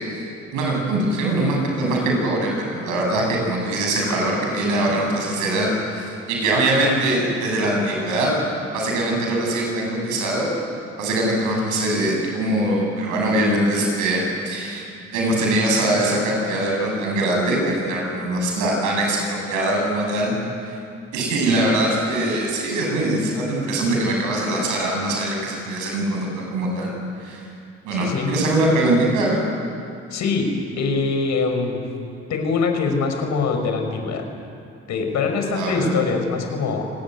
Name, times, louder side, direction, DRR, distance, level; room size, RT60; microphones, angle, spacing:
voice 1, 0.5-8.4 8.7-10.5 11.0-14.9 15.1-20.3 20.6-20.8 21.1-26.9 27.2-27.5 27.8-29.4 35.5-35.9, right 1 dB, 80° right, 0 dB, 7.9 m, -22 dB
voice 2, 27.9-28.3 30.1-31.8 32.3-34.2 34.9-36.8, left 4 dB, 70° left, 4 dB, 5.2 m, -23 dB
26.5 x 19.0 x 9.5 m, 2.5 s
hypercardioid pair, 50°, 30 cm